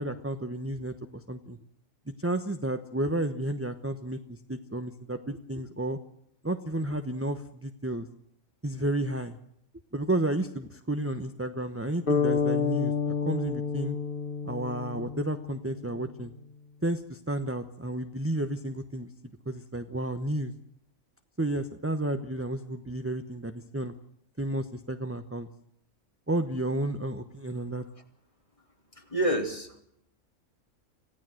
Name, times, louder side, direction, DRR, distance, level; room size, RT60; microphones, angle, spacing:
voice 1, 0.0-1.6 2.2-6.0 6.4-8.1 8.6-9.4 9.9-14.0 14.4-16.3 16.8-19.1 19.5-20.5 21.4-23.9 24.4-25.5 26.3-27.8, right 1 dB, 10° right, 8 dB, 0.9 m, -32 dB
sound 1, 12.1-16.0, left 5 dB, 40° left, 1.9 m, -29 dB
voice 2, 29.0-29.8, right 1 dB, 25° left, 4 dB, 3.2 m, -28 dB
26.5 x 16.5 x 7.8 m, 0.75 s
omnidirectional pair, 1.4 m